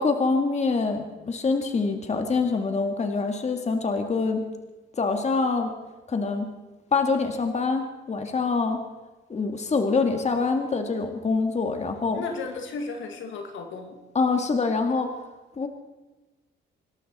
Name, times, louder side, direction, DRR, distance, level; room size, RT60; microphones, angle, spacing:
voice 1, 0.0-4.5 5.0-5.7 6.1-6.5 6.9-8.8 9.3-12.2 14.2-15.1 15.6-15.7, left 4 dB, 35° left, 5 dB, 2.0 m, -25 dB
voice 2, 12.1-14.0, left 3 dB, 75° left, 4 dB, 2.4 m, -34 dB
26.0 x 12.0 x 4.3 m, 1.1 s
cardioid pair, 90°, 20 cm